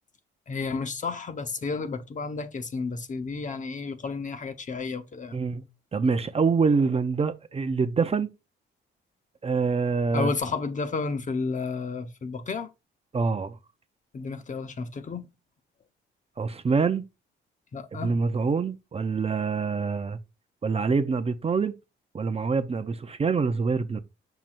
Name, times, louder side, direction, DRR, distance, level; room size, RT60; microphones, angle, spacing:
voice 1, 0.5-5.4 10.1-12.7 14.1-15.3 17.7-18.1, left 4 dB, 40° left, 1.0 m, -32 dB
voice 2, 5.3-5.6 5.9-8.3 9.4-10.3 13.1-13.6 16.4-17.0 17.9-20.2 20.6-21.7 22.1-24.0, right 4 dB, 30° right, 0.7 m, -25 dB
7.4 x 5.9 x 2.6 m
cardioid pair, 90°, 20 cm